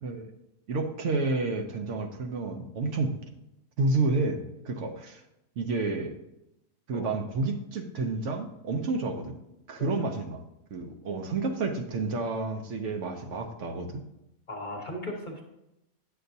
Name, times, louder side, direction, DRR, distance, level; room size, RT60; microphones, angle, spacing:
voice 1, 0.7-3.2 3.8-5.2 5.6-6.2 6.9-9.4 9.7-10.4 10.7-14.0, right 3 dB, 65° right, 4 dB, 1.0 m, -30 dB
voice 2, 14.5-15.4, left 1 dB, 40° left, 1 dB, 1.0 m, -37 dB
8.9 x 6.6 x 2.7 m, 0.87 s
omnidirectional pair, 1.4 m